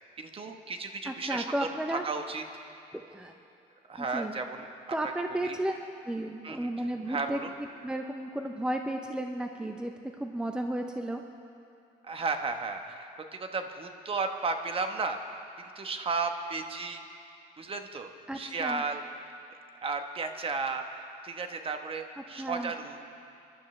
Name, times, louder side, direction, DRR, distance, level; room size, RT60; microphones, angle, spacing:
voice 1, 0.2-2.4 3.9-4.7 5.0-5.1 5.4-5.6 6.4-7.5 12.0-15.3 15.7-17.0 17.6-19.1 19.8-23.1, right 4 dB, 35° right, 6 dB, 1.1 m, -34 dB
voice 2, 1.0-2.1 2.9-3.3 4.0-4.4 4.9-5.7 6.0-7.4 7.8-9.9 10.2-11.2 18.3-18.8 22.4-22.7, right 1 dB, 5° right, 4 dB, 0.7 m, -33 dB
27.5 x 12.0 x 3.3 m, 2.6 s
cardioid pair, 110°, 17 cm